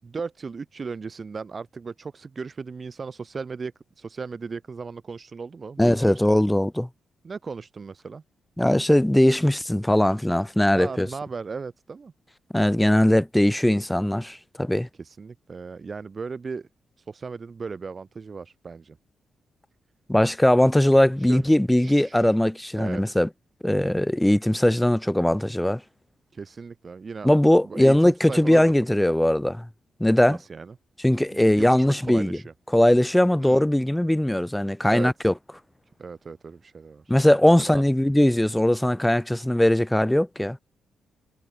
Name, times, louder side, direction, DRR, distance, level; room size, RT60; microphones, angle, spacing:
voice 1, 0.0-6.4 7.2-8.2 10.7-12.1 15.0-16.7 17.1-19.0 21.2-21.4 21.8-22.3 22.8-23.2 26.3-27.3 27.6-28.7 30.3-30.7 31.3-32.5 33.4-33.7 34.9-35.3 36.0-37.2 37.6-37.8, right 5 dB, 45° right, 7.2 m, -37 dB
voice 2, 5.8-6.9 8.6-11.1 12.5-14.9 20.1-23.3 23.6-25.8 27.2-29.7 30.0-30.4 31.0-32.4 32.7-35.3 37.1-40.6, left 1 dB, 10° left, 2.6 m, -20 dB
hypercardioid pair, 45°, 0 cm